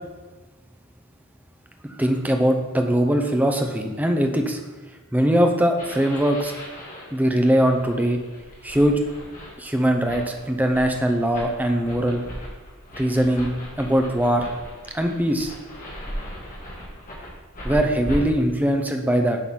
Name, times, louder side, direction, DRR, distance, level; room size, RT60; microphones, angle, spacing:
voice 1, 1.9-4.6 5.1-6.5 7.1-8.2 8.6-9.0 9.6-12.2 13.0-13.5 13.8-14.5 14.9-15.5 17.6-19.4, right 1 dB, 5° right, 4 dB, 0.6 m, -21 dB
sound 1, 5.8-18.2, equal, 35° left, 1.9 m, -38 dB
7.8 x 3.9 x 6.1 m, 1.2 s
head